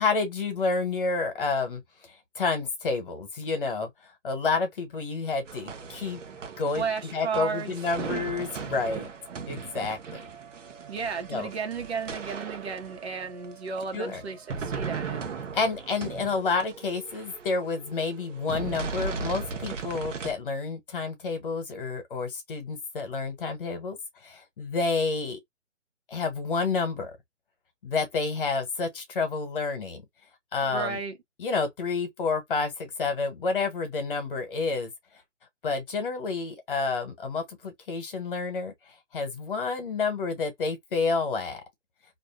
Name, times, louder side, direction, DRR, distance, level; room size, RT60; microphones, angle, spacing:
voice 1, 0.0-1.8 2.3-6.2 6.6-9.1 9.5-10.2 11.3-11.5 13.9-14.2 15.5-24.0 24.2-25.4 26.1-27.1 27.8-30.0 30.5-31.0 31.4-34.9 35.6-38.7 39.1-41.6, left 4 dB, 45° left, 1.2 m, -29 dB
sound 1, 5.5-20.3, right 5 dB, 90° right, 0.8 m, -38 dB
voice 2, 6.7-7.7 10.9-15.2 30.7-31.2, right 5 dB, 60° right, 1.1 m, -33 dB
2.7 x 2.3 x 2.3 m
hypercardioid pair, 160°, 36 cm